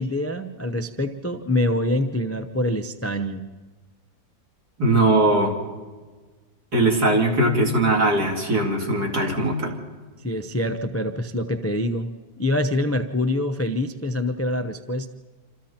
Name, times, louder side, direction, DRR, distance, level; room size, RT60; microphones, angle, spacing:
voice 1, 0.0-3.4 10.2-15.1, left 1 dB, 25° left, 8 dB, 0.3 m, -25 dB
voice 2, 4.8-5.5 6.7-9.7, right 2 dB, 70° right, 0 dB, 3.8 m, -20 dB
27.5 x 27.0 x 4.4 m, 1.4 s
omnidirectional pair, 1.8 m